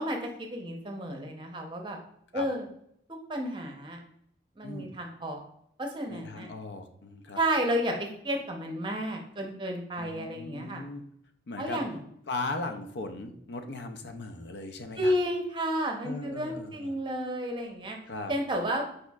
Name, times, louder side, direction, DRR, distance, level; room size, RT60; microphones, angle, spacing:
voice 1, 0.0-2.0 2.3-2.7 3.3-4.0 4.6-5.4 5.8-6.5 7.4-10.8 11.6-12.0 15.0-18.0 18.3-18.9, equal, 25° right, 3 dB, 0.7 m, -31 dB
voice 2, 4.6-4.9 6.1-7.4 10.0-11.0 11.5-11.8 12.3-15.1 16.0-16.9 18.1-18.3, left 2 dB, 70° left, 6 dB, 0.5 m, -38 dB
4.8 x 4.4 x 2.3 m, 0.72 s
head